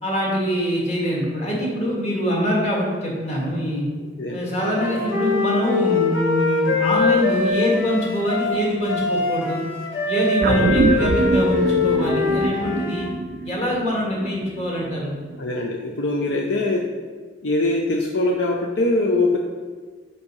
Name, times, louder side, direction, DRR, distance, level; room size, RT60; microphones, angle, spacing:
voice 1, 0.0-3.9 4.3-9.6 10.1-13.1 13.4-15.2, equal, 35° left, -3 dB, 1.8 m, -24 dB
voice 2, 4.2-4.5 15.4-16.9 17.4-19.4, left 2 dB, 65° left, 0 dB, 0.6 m, -22 dB
Wind instrument woodwind instrument, 4.5-13.1, left 3 dB, 90° left, 1.1 m, -23 dB
sound 1, 10.4-15.0 15.3-15.4, right 3 dB, 45° right, 0.3 m, -24 dB
5.3 x 4.8 x 5.5 m, 1.5 s
head